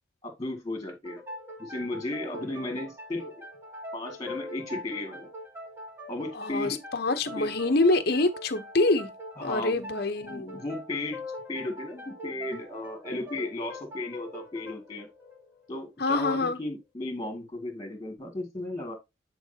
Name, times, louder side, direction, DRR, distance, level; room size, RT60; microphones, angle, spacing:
voice 1, 0.2-1.2 1.6-3.4 3.9-5.3 6.1-6.8 7.4-7.5 9.4-9.8 10.2-11.2 11.5-15.1 15.7-18.9, left 2 dB, 20° left, 2.2 m, -35 dB
sound 1, 1.0-16.4, left 1 dB, 10° right, 1.8 m, -43 dB
voice 2, 6.3-9.1 9.4-10.6 16.0-16.6, left 2 dB, 50° left, 0.9 m, -26 dB
10.0 x 4.7 x 2.8 m
head